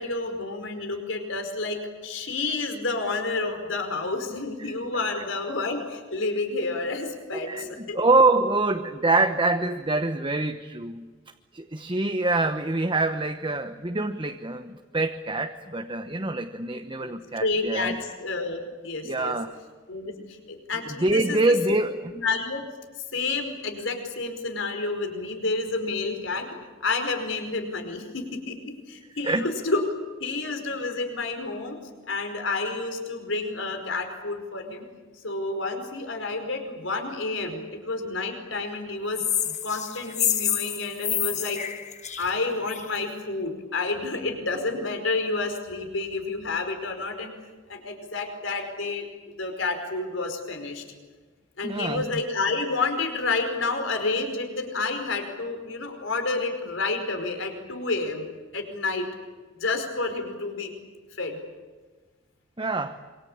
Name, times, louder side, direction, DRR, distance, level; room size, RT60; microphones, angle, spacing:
voice 1, 0.0-8.0 17.0-19.3 19.9-20.1 20.5-21.4 21.7-21.8 22.1-22.6 23.1-26.5 26.8-29.8 30.2-31.8 32.0-34.8 35.2-39.2 39.6-41.6 42.2-47.3 47.7-49.1 49.4-50.8 51.6-58.3 58.5-59.1 59.5-60.7 61.2-61.4, left 3 dB, 70° left, 5 dB, 5.0 m, -29 dB
voice 2, 7.3-11.1 11.5-18.0 19.0-19.5 20.9-22.1 29.2-29.5 51.6-52.2 62.6-63.0, right 2 dB, 25° right, 6 dB, 1.1 m, -25 dB
sound 1, 39.1-43.0, left 9 dB, 35° left, 1.4 m, -28 dB
26.5 x 25.0 x 8.8 m, 1.4 s
head